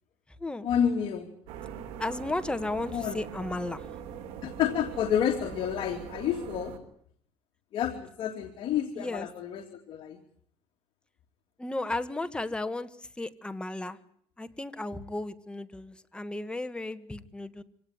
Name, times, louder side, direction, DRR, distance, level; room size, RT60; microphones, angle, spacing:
voice 1, 0.6-1.3 2.9-3.2 4.4-6.7 7.7-10.2, left 9 dB, 60° left, 4 dB, 2.9 m, -29 dB
sound 1, 1.5-6.8, right 8 dB, 90° right, 3.7 m, -42 dB
voice 2, 2.0-3.9 8.9-9.3 11.6-14.0 14.4-17.6, left 2 dB, 10° left, 10 dB, 1.7 m, -34 dB
25.5 x 17.5 x 9.7 m, 0.64 s
cardioid pair, 115°, 10 cm